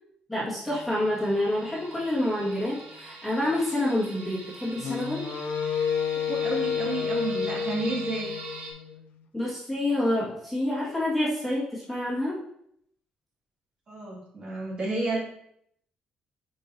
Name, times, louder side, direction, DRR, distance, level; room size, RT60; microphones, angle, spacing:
voice 1, 0.3-5.3 9.3-12.4, left 1 dB, ahead, -8 dB, 2.0 m, -28 dB
sound 1, 0.6-8.7, right 3 dB, 80° right, 1.8 m, -43 dB
Wind instrument woodwind instrument, 4.8-9.0, left 7 dB, 70° left, 0.7 m, -30 dB
voice 2, 6.1-8.3 13.9-15.2, right 2 dB, 40° right, -6 dB, 2.9 m, -31 dB
9.8 x 4.8 x 2.8 m, 0.70 s
cardioid pair, 140°, 3 cm